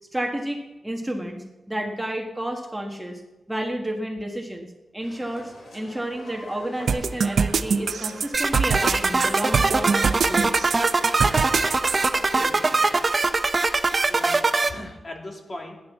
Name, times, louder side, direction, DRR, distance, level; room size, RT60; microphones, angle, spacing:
voice 1, 0.1-3.2 3.5-4.7 4.9-10.7, right 1 dB, 10° right, 3 dB, 1.5 m, -31 dB
sound 1, 5.0-12.9, left 1 dB, 65° left, 4.2 m, -45 dB
sound 2, 6.9-12.1, right 6 dB, 75° right, 0.6 m, -24 dB
sound 3, 8.3-14.7, right 3 dB, 35° right, 0.9 m, -22 dB
voice 2, 12.1-12.8 13.7-15.8, left 1 dB, 40° left, 1 dB, 3.0 m, -39 dB
14.0 x 10.0 x 7.2 m, 1.1 s
wide cardioid pair, 90°, 0 cm